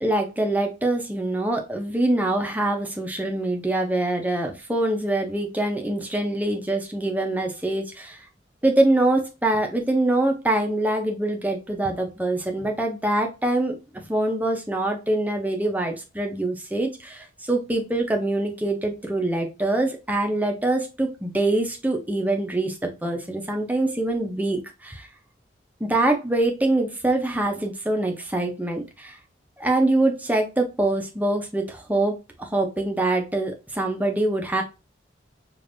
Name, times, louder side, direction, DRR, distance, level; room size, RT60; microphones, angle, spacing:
voice 1, 0.0-8.2 8.6-13.7 14.1-25.1 25.8-29.2 29.6-34.6, right 2 dB, 10° right, 2 dB, 0.6 m, -24 dB
5.1 x 2.5 x 2.6 m, 0.28 s
head